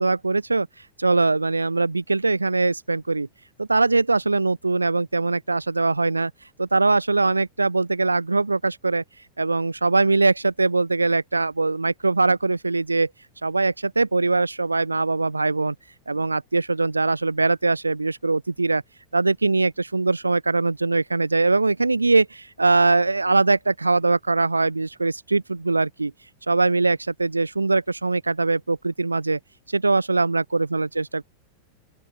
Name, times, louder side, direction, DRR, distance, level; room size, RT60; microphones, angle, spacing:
voice 1, 0.0-3.3 3.6-6.3 6.6-9.0 9.4-13.1 13.4-15.7 16.1-18.8 19.1-26.1 26.5-29.4 29.7-31.2, right 3 dB, 80° right, 0.7 m, -22 dB
open air
figure-of-eight pair, 90°, 0 cm